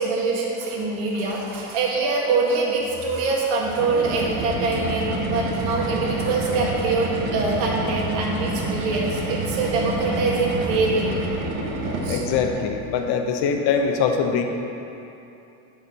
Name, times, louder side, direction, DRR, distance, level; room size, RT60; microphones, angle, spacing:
voice 1, 0.0-11.3 12.0-12.2, right 3 dB, 90° right, -2 dB, 1.7 m, -24 dB
sound 1, 3.7-12.8, right 2 dB, 70° right, 1.3 m, -28 dB
voice 2, 12.1-14.4, left 6 dB, 70° left, 4 dB, 1.0 m, -23 dB
12.5 x 5.0 x 4.2 m, 2.9 s
cardioid pair, 120°, 40 cm